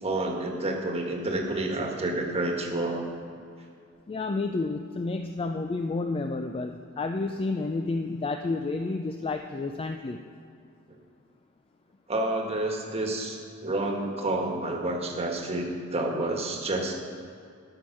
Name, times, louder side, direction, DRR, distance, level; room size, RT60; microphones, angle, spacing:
voice 1, 0.0-3.1 10.9-11.0 12.1-17.1, right 2 dB, 30° right, 1 dB, 1.4 m, -29 dB
voice 2, 4.1-10.2, left 3 dB, 25° left, 6 dB, 0.3 m, -30 dB
12.5 x 6.3 x 5.9 m, 2.4 s
head